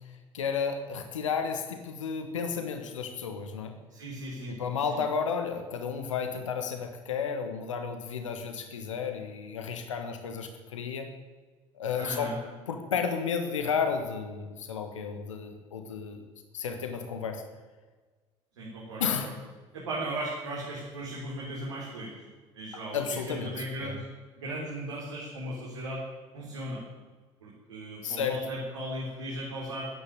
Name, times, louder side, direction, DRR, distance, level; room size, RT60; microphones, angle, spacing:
voice 1, 0.3-3.7 4.5-11.1 11.7-12.3 12.7-16.2 16.5-17.4 19.0-19.3 22.9-23.5 23.8-24.0 28.0-28.4, left 6 dB, 75° left, 6 dB, 1.5 m, -32 dB
voice 2, 3.9-4.6 4.9-5.0 12.0-12.4 18.6-19.3 19.7-22.1 22.5-24.0 24.4-26.0 26.3-26.8 27.4-29.9, right 1 dB, 75° right, -5 dB, 3.9 m, -37 dB
14.5 x 10.0 x 9.4 m, 1.3 s
figure-of-eight pair, 60°, 16 cm